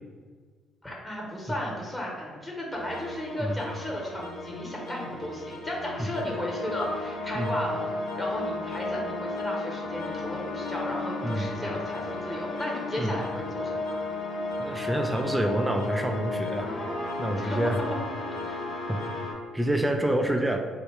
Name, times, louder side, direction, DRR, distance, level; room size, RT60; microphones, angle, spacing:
voice 1, 0.8-14.0 17.4-17.6 18.4-18.6, equal, 20° left, -2 dB, 1.2 m, -35 dB
sound 1, 2.7-19.3, left 2 dB, 55° left, 0.9 m, -34 dB
voice 2, 14.6-16.7 17.2-17.8 18.9-19.0 19.5-20.7, right 1 dB, 10° right, 4 dB, 0.4 m, -27 dB
3.8 x 2.2 x 3.5 m, 1.5 s
hypercardioid pair, 45°, 0 cm